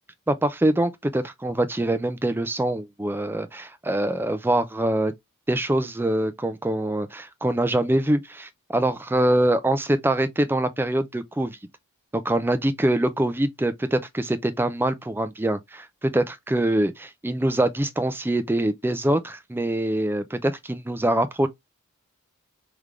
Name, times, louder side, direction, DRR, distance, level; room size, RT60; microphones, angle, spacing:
voice 1, 0.3-5.1 5.5-11.6 12.1-21.5, right 1 dB, 10° right, 0.4 m, -24 dB
3.7 x 3.3 x 3.2 m
head